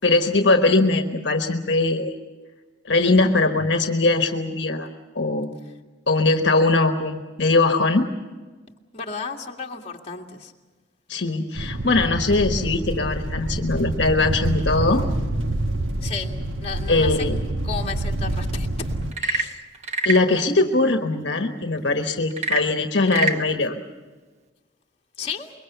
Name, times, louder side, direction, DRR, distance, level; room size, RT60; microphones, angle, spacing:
voice 1, 0.0-2.1 2.8-4.9 5.1-5.6 6.1-8.1 11.1-15.1 16.9-17.4 19.3-19.5 20.0-23.8, left 3 dB, 65° left, 5 dB, 1.3 m, -21 dB
voice 2, 8.9-10.5 16.0-17.3 17.6-18.9 19.3-19.6 25.2-25.5, left 5 dB, 30° left, 1 dB, 1.9 m, -33 dB
sound 1, 11.6-19.1, right 2 dB, 85° right, 1.3 m, -27 dB
Frog / Percussion / Wood, 19.0-20.3 22.3-23.5, right 3 dB, 35° right, 1.2 m, -25 dB
25.0 x 22.5 x 6.8 m, 1.3 s
head